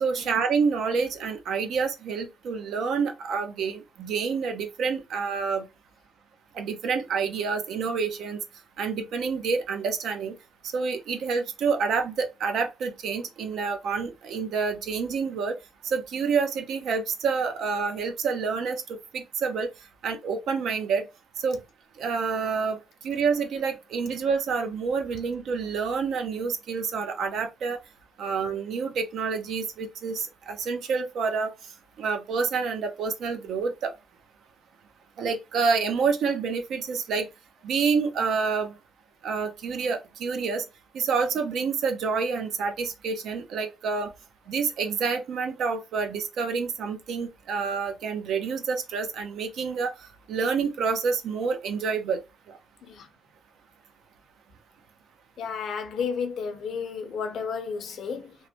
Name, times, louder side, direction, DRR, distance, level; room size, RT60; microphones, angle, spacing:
voice 1, 0.0-5.7 6.6-8.4 8.8-10.3 10.7-15.5 15.8-18.8 19.1-19.7 20.0-21.1 21.4-21.6 22.0-22.8 23.0-27.8 28.2-31.5 32.0-33.9 35.2-37.3 37.6-38.7 39.2-40.6 40.9-44.1 44.5-49.9 50.3-52.2, right 5 dB, 75° right, 0.5 m, -28 dB
voice 2, 55.4-58.4, left 6 dB, 65° left, 0.6 m, -32 dB
3.1 x 2.0 x 2.7 m
cardioid pair, 90°, 0 cm